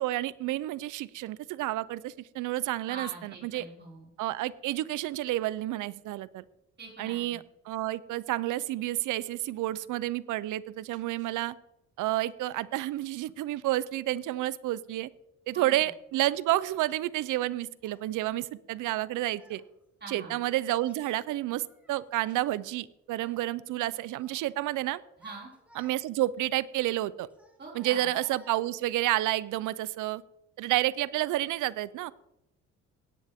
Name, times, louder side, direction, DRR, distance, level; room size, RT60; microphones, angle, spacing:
voice 1, 0.0-3.7 4.2-6.4 7.0-11.5 12.0-15.1 15.5-19.6 20.1-25.0 25.8-27.3 27.7-30.2 30.6-32.1, right 15 dB, 85° right, 19 dB, 0.6 m, -30 dB
voice 2, 2.9-4.1 6.8-7.4 15.5-15.9 20.0-20.4 25.2-25.5 27.6-28.1, right 3 dB, 35° right, -3 dB, 5.6 m, -44 dB
Child speech kid speaking, 17.8-18.0 18.9-19.6 20.6-21.2 21.6-22.9 23.1-23.4 23.8-24.4 24.9-26.3 27.3-29.0, equal, 5° right, 3.1 m, -58 dB
17.0 x 9.7 x 3.6 m, 0.84 s
cardioid pair, 90°, 30 cm